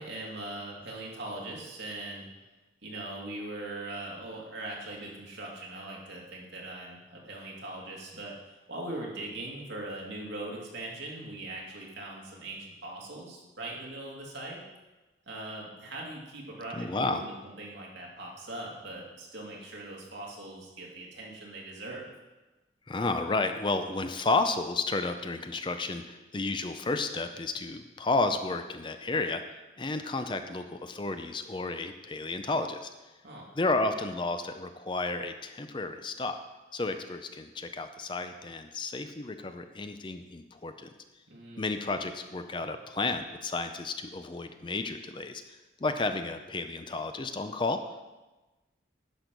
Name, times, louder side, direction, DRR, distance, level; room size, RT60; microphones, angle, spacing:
voice 1, 0.0-2.3 2.8-8.3 8.7-14.6 15.3-22.1 33.2-33.5 41.3-41.6, right 2 dB, 70° right, -3 dB, 2.4 m, -40 dB
voice 2, 16.8-17.2 22.9-29.4 29.8-32.9 33.6-36.4 36.7-40.9 41.6-48.0, left 3 dB, 25° left, 8 dB, 0.5 m, -32 dB
10.5 x 6.2 x 5.2 m, 1.1 s
head